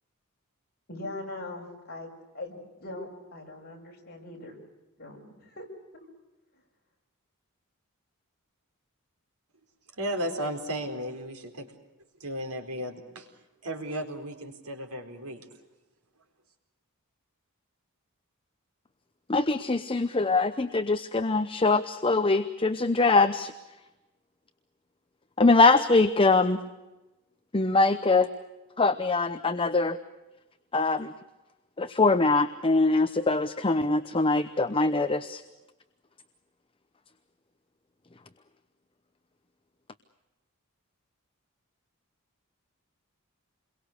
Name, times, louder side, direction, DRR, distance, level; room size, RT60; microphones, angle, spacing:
voice 1, 0.9-2.1 2.3-4.6 5.0-5.7 5.9-6.0, left 2 dB, 45° left, 0 dB, 7.1 m, -41 dB
voice 2, 10.0-11.7 12.2-13.3 13.6-15.4, right 1 dB, 85° right, 4 dB, 4.3 m, -34 dB
voice 3, 19.3-23.5 25.4-26.6 27.5-28.3 28.8-30.0 30.7-31.1 31.8-35.4, left 3 dB, 25° left, 10 dB, 0.8 m, -23 dB
28.5 x 22.5 x 6.6 m, 1.1 s
head